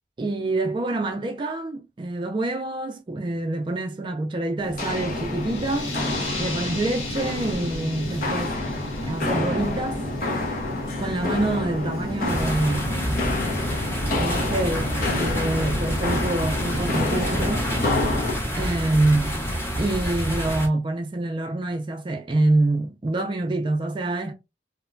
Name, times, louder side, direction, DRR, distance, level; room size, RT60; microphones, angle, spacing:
voice 1, 0.2-5.9 6.4-8.6 9.0-10.0 11.0-13.2 14.2-17.7 18.6-19.3 19.8-24.3, right 2 dB, 25° right, 0.3 m, -26 dB
Walk footsteps, 4.6-18.4, left 2 dB, 50° left, 0.7 m, -28 dB
sound 1, 5.3-10.7, left 3 dB, 90° left, 1.6 m, -38 dB
sound 2, 12.3-20.7, equal, 15° left, 0.7 m, -28 dB
2.8 x 2.1 x 2.5 m
head